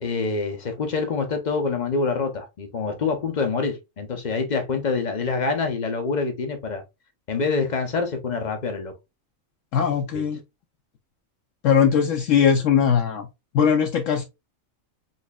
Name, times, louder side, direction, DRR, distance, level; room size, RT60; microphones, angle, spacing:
voice 1, 0.0-6.8 7.3-8.9, left 4 dB, 45° left, 0.6 m, -26 dB
voice 2, 9.7-10.4 11.6-13.3 13.5-14.2, left 7 dB, 70° left, 0.9 m, -20 dB
4.1 x 3.1 x 2.2 m
omnidirectional pair, 1.4 m